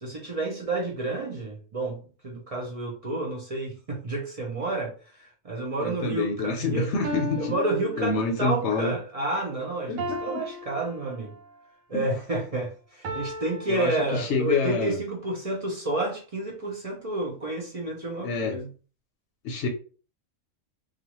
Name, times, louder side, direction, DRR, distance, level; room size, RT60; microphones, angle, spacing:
voice 1, 0.0-4.9 5.4-6.9 7.4-11.4 11.9-18.7, right 2 dB, 50° right, 0.4 m, -30 dB
voice 2, 5.8-7.5 8.0-9.0 9.9-10.2 11.9-12.1 13.7-15.0 18.2-18.5 19.4-19.7, left 3 dB, 65° left, 0.8 m, -27 dB
sound 1, 6.3-6.4 7.0-8.6 10.0-11.6 13.0-14.7, equal, 80° right, 1.0 m, -36 dB
2.4 x 2.3 x 2.9 m
omnidirectional pair, 1.4 m